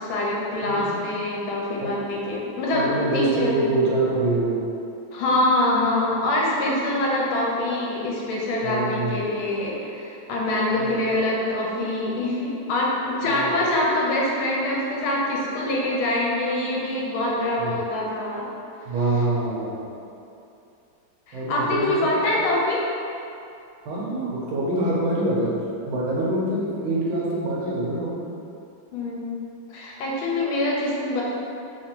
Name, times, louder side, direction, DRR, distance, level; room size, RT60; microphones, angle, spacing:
voice 1, 0.0-3.8 5.1-18.5 21.3-22.8 28.9-29.2 29.7-31.2, left 1 dB, 75° left, -4 dB, 1.5 m, -24 dB
voice 2, 0.6-1.0 1.8-2.0 2.7-4.6 8.6-9.1 10.7-11.0 13.2-13.5 17.6-17.7 18.9-19.9 21.3-22.1 23.9-25.6 25.9-28.2, right 2 dB, 80° right, -5 dB, 1.5 m, -25 dB
3.6 x 2.6 x 2.9 m, 2.6 s
omnidirectional pair, 2.4 m